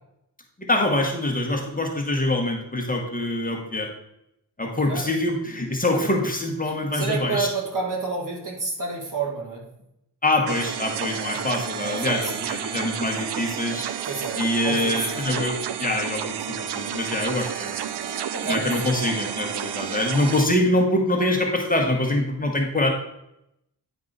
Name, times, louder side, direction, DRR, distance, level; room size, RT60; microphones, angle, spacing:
voice 1, 0.7-3.9 4.6-7.5 10.2-13.9 14.4-22.9, left 1 dB, 20° left, 1 dB, 1.1 m, -24 dB
voice 2, 6.9-9.6 11.8-12.3 14.1-15.5 18.3-19.0, right 4 dB, 50° right, -1 dB, 1.9 m, -30 dB
sound 1, 10.5-20.5, right 9 dB, 85° right, 0.6 m, -31 dB
9.1 x 4.8 x 3.9 m, 0.82 s
wide cardioid pair, 135°, 40 cm